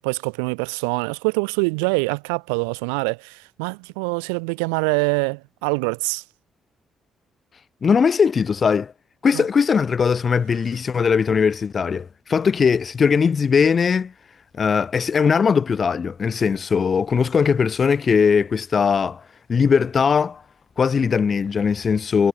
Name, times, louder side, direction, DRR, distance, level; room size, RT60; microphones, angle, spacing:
voice 1, 0.0-6.2 9.3-9.4, right 36 dB, 80° right, 0.9 m, -24 dB
voice 2, 7.8-8.9 9.2-14.1 14.6-19.2 19.5-20.4 20.8-22.3, left 6 dB, 45° left, 0.5 m, -19 dB
hypercardioid pair, 45°, 0 cm